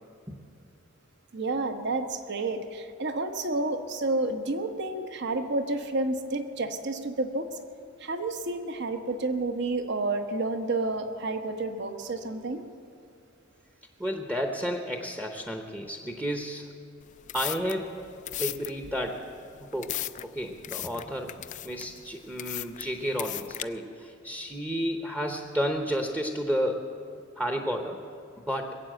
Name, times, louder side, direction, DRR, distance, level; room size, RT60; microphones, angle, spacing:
voice 1, 1.3-7.5 8.0-12.6, right 2 dB, 60° right, 6 dB, 1.1 m, -30 dB
voice 2, 14.0-16.7 17.3-18.1 18.4-19.3 19.6-21.4 21.6-26.9 27.4-28.0 28.4-28.8, equal, 10° right, 3 dB, 0.8 m, -31 dB
sound 1, 17.0-23.6, left 13 dB, 40° left, 0.3 m, -37 dB
21.0 x 8.2 x 7.8 m, 2.4 s
head